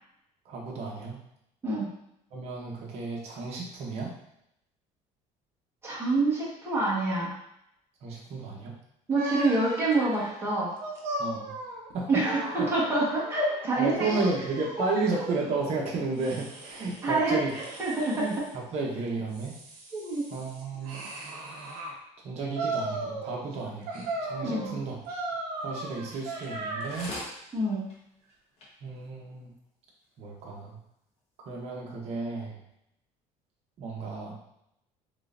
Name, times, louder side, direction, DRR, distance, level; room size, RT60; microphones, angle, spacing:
voice 1, 0.5-1.2 2.3-4.1 8.0-8.7 11.2-11.5 11.9-12.2 12.6-12.7 13.8-17.5 18.1-19.6 20.3-21.0 22.2-24.9 25.6-27.1 28.8-29.5 30.2-30.8 31.5-32.6 33.8-34.3, right 3 dB, 50° right, -2 dB, 1.0 m, -33 dB
voice 2, 5.8-7.3 9.1-10.7 12.1-14.2 17.0-18.3 19.9-20.2 24.4-24.8 27.5-27.9, right 2 dB, 20° right, -7 dB, 1.4 m, -27 dB
sound 1, 9.1-13.6 14.0-15.5 16.2-17.1 17.5-18.5 19.1-21.9 22.5-23.5 23.9-27.3, right 2 dB, 85° right, 0.9 m, -37 dB
sound 2, 26.5-26.6 26.9-27.3 27.9-28.0 28.3-28.4 28.6-28.7 29.3-29.4, left 1 dB, 50° left, 1.1 m, -39 dB
3.7 x 3.4 x 2.6 m, 0.78 s
cardioid pair, 155°, 14 cm